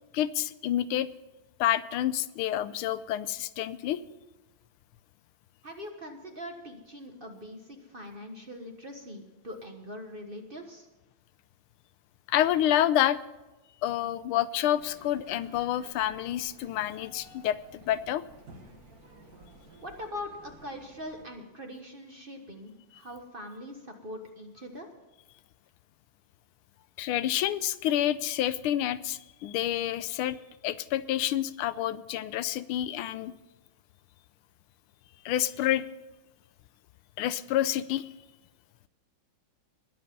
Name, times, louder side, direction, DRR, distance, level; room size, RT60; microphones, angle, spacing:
voice 1, 0.1-1.1 1.6-4.0 12.3-13.2 13.8-18.3 27.0-30.4 30.6-33.3 35.2-35.8 37.2-38.1, left 12 dB, 85° left, 15 dB, 1.5 m, -28 dB
voice 2, 5.6-10.9 19.8-24.9, left 1 dB, 30° right, 3 dB, 1.3 m, -42 dB
sound 1, 14.8-21.2, right 1 dB, 45° right, 2.0 m, -53 dB
20.5 x 7.7 x 5.4 m, 1.1 s
omnidirectional pair, 2.3 m